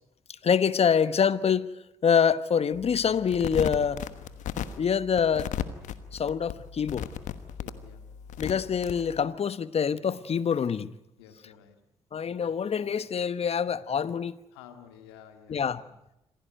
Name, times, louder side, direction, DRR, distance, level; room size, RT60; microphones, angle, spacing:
voice 1, 0.4-1.7 2.0-4.0 4.8-5.5 6.1-7.1 8.4-10.9 12.1-14.4 15.5-15.8, left 7 dB, 50° left, 1.1 m, -25 dB
sound 1, 2.7-9.2, left 9 dB, 70° left, 1.3 m, -37 dB
voice 2, 7.6-8.2 11.2-11.8 14.5-16.0, left 8 dB, 90° left, 2.0 m, -52 dB
26.5 x 16.5 x 9.2 m
hypercardioid pair, 40°, 13 cm